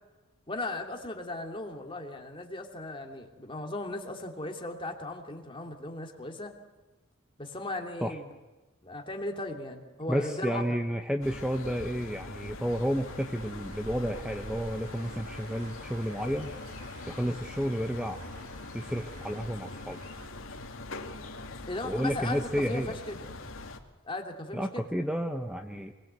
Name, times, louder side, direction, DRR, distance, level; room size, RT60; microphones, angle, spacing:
voice 1, 0.5-6.5 7.4-8.3 8.8-10.8 17.2-17.4 21.7-23.3 24.0-24.9, left 2 dB, 25° left, 3 dB, 2.8 m, -37 dB
voice 2, 10.1-16.5 17.1-18.2 18.7-20.0 21.8-22.9 24.5-25.9, equal, 5° right, 5 dB, 1.0 m, -31 dB
sound 1, 11.2-23.8, left 2 dB, 70° left, 2.3 m, -43 dB
sound 2, 12.7-20.3, right 1 dB, 40° right, 4.5 m, -50 dB
25.0 x 21.5 x 8.2 m, 1.1 s
head